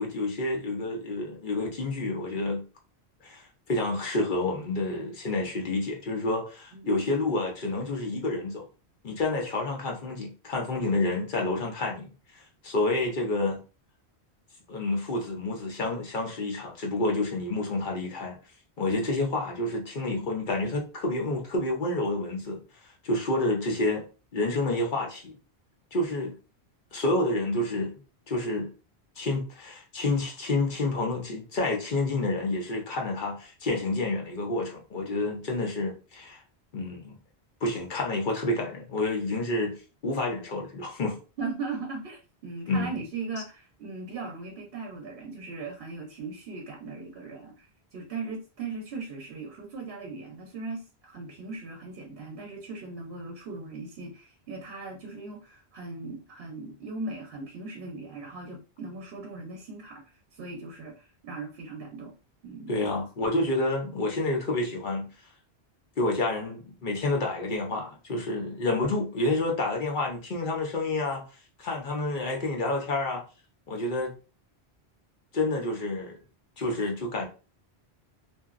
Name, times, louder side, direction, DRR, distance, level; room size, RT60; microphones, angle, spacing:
voice 1, 0.0-2.6 3.2-8.7 9.0-12.1 12.3-13.6 14.7-18.4 18.8-24.0 24.3-25.3 25.9-26.3 26.9-27.9 28.3-28.7 29.2-36.4 36.7-37.2 37.6-39.8 40.0-41.2 42.7-42.9 62.7-65.1 66.0-71.2 71.6-73.2 73.7-74.1 75.3-76.2 76.6-77.3, left 2 dB, 55° left, 0.8 m, -29 dB
voice 2, 41.4-62.1 62.4-62.8, right 3 dB, 70° right, 0.9 m, -38 dB
2.8 x 2.5 x 2.4 m
omnidirectional pair, 1.1 m